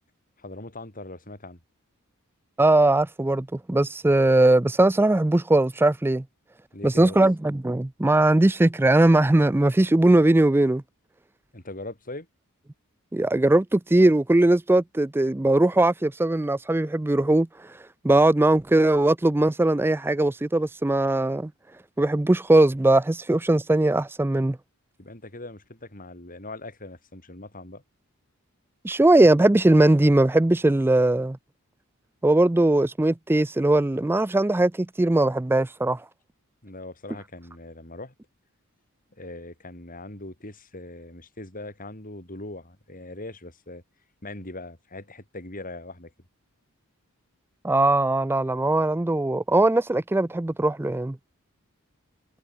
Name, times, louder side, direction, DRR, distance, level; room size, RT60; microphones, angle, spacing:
voice 1, 0.4-1.6 6.7-7.2 11.5-12.3 25.0-27.8 36.6-38.1 39.2-43.8 44.2-46.1, left 2 dB, 40° left, 6.9 m, -40 dB
voice 2, 2.6-6.2 6.8-10.8 13.1-21.5 22.0-24.6 28.8-31.4 32.2-36.0 47.6-51.2, right 2 dB, 10° right, 0.4 m, -20 dB
head